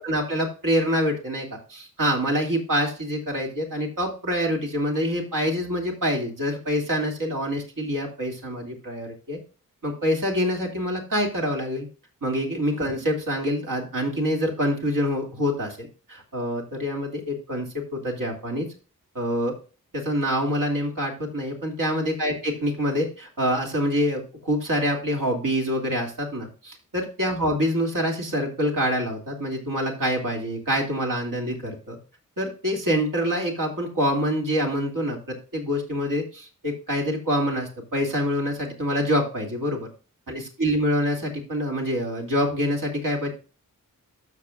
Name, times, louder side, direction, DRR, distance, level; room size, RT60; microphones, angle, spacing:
voice 1, 0.0-9.4 9.8-11.9 12.2-18.7 19.1-19.5 19.9-32.0 32.4-39.9 40.3-43.3, equal, 75° right, 0 dB, 2.6 m, -26 dB
12.5 x 6.7 x 2.5 m, 0.36 s
wide cardioid pair, 105°, 33 cm